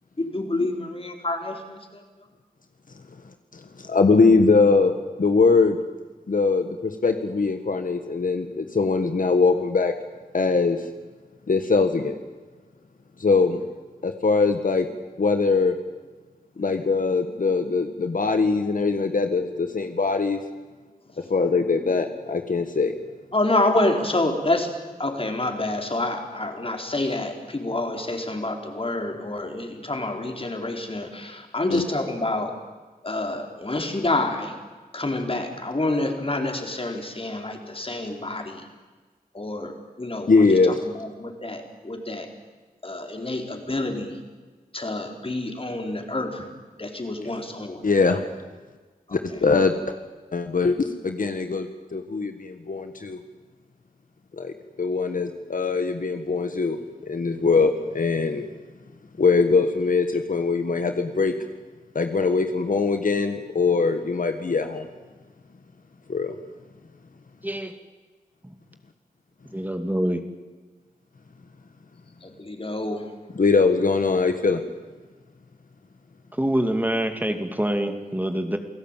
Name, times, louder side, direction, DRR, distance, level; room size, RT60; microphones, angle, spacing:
voice 1, 0.2-2.0 23.3-24.7 25.0-32.6 33.0-34.5 34.9-38.7 39.3-39.7 40.0-40.6 40.9-42.3 42.8-44.2 44.7-46.5 46.8-47.8 49.1-49.2 72.2-73.1, left 2 dB, 35° left, 3 dB, 4.4 m, -27 dB
voice 2, 3.5-5.8 6.3-9.9 10.3-10.8 11.5-12.2 13.2-13.6 14.0-14.9 15.2-15.7 16.6-20.4 21.3-22.9 31.7-31.8 40.3-40.8 47.8-48.2 49.1-49.8 50.3-50.8 51.0-53.2 54.4-56.8 57.0-58.5 59.2-61.3 61.9-64.9 66.1-66.3 73.3-74.6, left 4 dB, 60° left, 7 dB, 1.7 m, -22 dB
voice 3, 67.4-67.7 68.5-68.6 69.5-70.2 76.4-78.6, right 1 dB, 10° right, 6 dB, 2.4 m, -25 dB
28.5 x 17.5 x 9.2 m, 1.3 s
wide cardioid pair, 65°, 16 cm